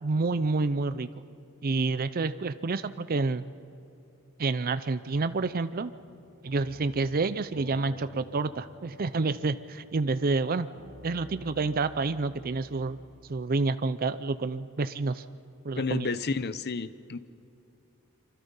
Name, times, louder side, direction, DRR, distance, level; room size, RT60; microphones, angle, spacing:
voice 1, 0.0-1.1 1.6-3.4 4.4-5.9 6.4-10.7 11.0-13.0 13.3-15.2 15.6-16.1, right 3 dB, 40° right, 13 dB, 0.5 m, -28 dB
sound 1, 5.0-13.3, right 1 dB, 60° right, 5.8 m, -52 dB
voice 2, 15.8-17.2, left 4 dB, 45° left, 14 dB, 0.7 m, -31 dB
25.5 x 24.5 x 5.5 m, 2.8 s
head